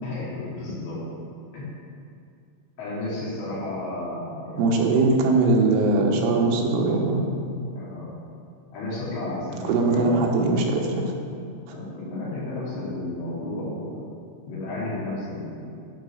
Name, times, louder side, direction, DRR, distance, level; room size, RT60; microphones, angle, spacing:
voice 1, 0.0-1.0 1.5-1.7 2.8-5.0 7.7-8.1 8.7-10.2 11.7-14.0 14.5-15.6, left 2 dB, 65° left, -9 dB, 4.9 m, -32 dB
voice 2, 4.6-7.3 9.7-11.1, right 3 dB, 85° right, 0 dB, 3.5 m, -21 dB
11.0 x 4.8 x 6.4 m, 2.4 s
omnidirectional pair, 5.6 m